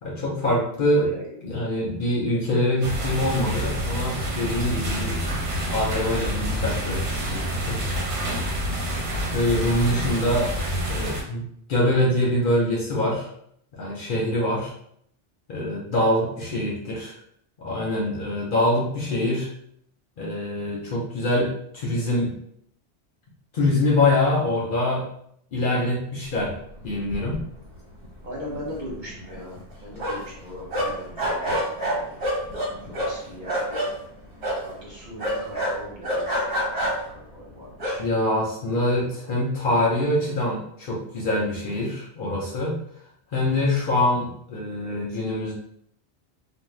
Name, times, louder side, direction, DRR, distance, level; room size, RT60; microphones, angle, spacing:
voice 1, 0.0-1.1 1.4-5.2 5.7-7.8 9.3-10.5 10.9-13.3 13.7-14.7 15.5-17.1 17.6-19.5 20.2-22.3 23.5-25.1 25.5-26.6 26.8-27.4 38.0-42.8 43.3-45.5, left 1 dB, 55° left, -3 dB, 0.7 m, -24 dB
voice 2, 0.7-1.7 16.0-16.7 28.2-31.6 31.9-32.2 32.8-34.0 34.6-38.0 39.0-39.2, equal, 50° right, -5 dB, 0.9 m, -40 dB
sound 1, 2.8-11.2, equal, 85° right, 1.0 m, -28 dB
sound 2, 26.8-26.9 27.1-27.8 28.0-28.1 28.5-30.4 30.7-33.9 34.4-34.6 35.2-37.2 37.7-38.0, equal, 70° right, 1.3 m, -27 dB
2.5 x 2.0 x 3.1 m, 0.68 s
omnidirectional pair, 1.2 m